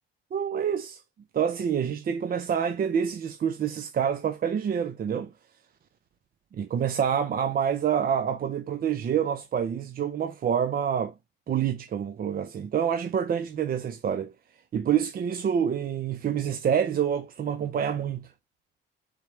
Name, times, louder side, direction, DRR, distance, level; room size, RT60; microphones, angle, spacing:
voice 1, 0.3-1.0 1.3-5.3 6.5-11.1 11.5-14.3 14.7-18.3, right 8 dB, 50° right, 0.6 m, -27 dB
4.5 x 3.5 x 3.1 m
cardioid pair, 90°, 20 cm